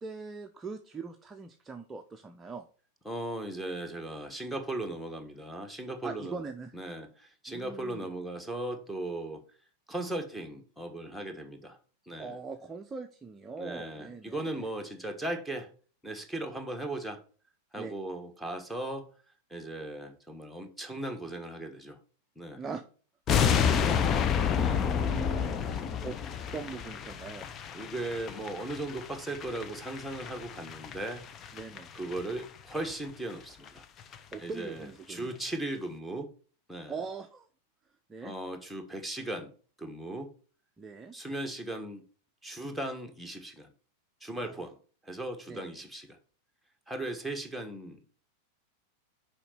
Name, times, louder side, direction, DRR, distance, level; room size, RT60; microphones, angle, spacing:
voice 1, 0.0-2.7 6.0-6.7 7.5-8.1 12.2-14.5 17.8-17.9 22.6-22.8 23.3-24.3 24.7-26.2 26.5-27.5 31.5-31.9 34.3-35.3 36.9-37.5 38.1-38.3 40.8-41.1 44.4-44.6 45.5-45.7, right 4 dB, 15° right, 5 dB, 0.7 m, -41 dB
voice 2, 3.0-6.5 6.7-9.4 9.9-11.8 12.1-12.4 13.6-15.7 16.0-17.2 17.7-19.1 19.5-22.0 22.3-22.6 24.5-24.9 25.6-25.8 27.7-31.2 31.9-33.8 34.4-36.3 36.7-36.9 38.2-39.5 39.8-40.3 41.1-42.0 42.4-43.7 44.2-44.8 45.0-46.2 46.9-48.1, right 1 dB, ahead, 4 dB, 1.4 m, -37 dB
sound 1, 23.3-32.4 32.7-32.9 33.3-33.4 33.7-33.8 34.0-34.3 34.6-34.7, left 7 dB, 30° left, 0.7 m, -30 dB
6.8 x 5.0 x 5.8 m, 0.40 s
figure-of-eight pair, 90°, 0 cm